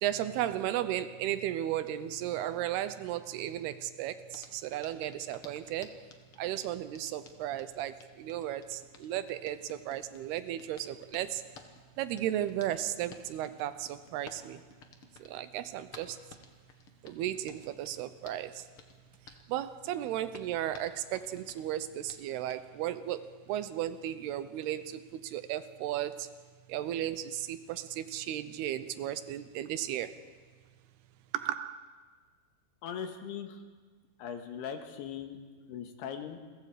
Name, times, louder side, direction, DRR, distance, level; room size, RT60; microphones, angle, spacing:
voice 1, 0.0-6.0 6.4-11.4 12.0-14.6 15.2-16.2 17.0-18.7 19.3-26.3 26.7-30.2 31.3-31.9, right 12 dB, 80° right, 2.7 m, -35 dB
Hands, 4.3-22.6, left 5 dB, 55° left, 1.6 m, -56 dB
voice 2, 32.8-33.6 34.2-35.4 35.7-36.4, left 8 dB, 75° left, 3.6 m, -39 dB
30.0 x 22.5 x 5.0 m
omnidirectional pair, 4.7 m